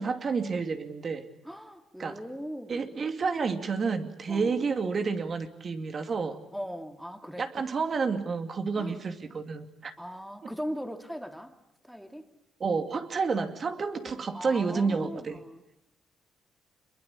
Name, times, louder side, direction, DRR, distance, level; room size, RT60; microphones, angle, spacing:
voice 1, 0.0-1.3 2.0-2.2 2.7-6.4 7.4-9.9 10.4-10.5 12.6-15.4, right 5 dB, 45° right, 7 dB, 2.5 m, -30 dB
voice 2, 1.4-3.0 4.3-4.7 6.5-7.6 8.7-9.0 10.0-11.6 11.8-12.3 14.3-15.8, equal, ahead, 6 dB, 2.7 m, -39 dB
26.0 x 22.0 x 8.7 m, 0.83 s
cardioid pair, 90°, 0 cm